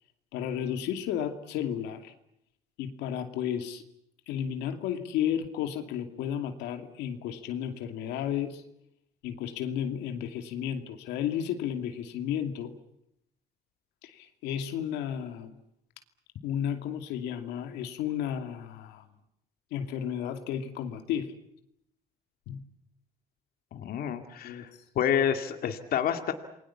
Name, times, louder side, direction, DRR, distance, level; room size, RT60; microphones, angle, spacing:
voice 1, 0.3-2.1 2.8-3.8 4.3-8.6 9.2-12.7 14.0-15.6 16.4-19.0 19.7-21.4 22.5-22.7 24.4-24.7, left 9 dB, 90° left, 6 dB, 2.6 m, -33 dB
voice 2, 23.7-24.7 25.0-26.3, left 9 dB, 65° left, 6 dB, 2.3 m, -28 dB
28.5 x 22.5 x 7.3 m, 0.78 s
cardioid pair, 110°, 17 cm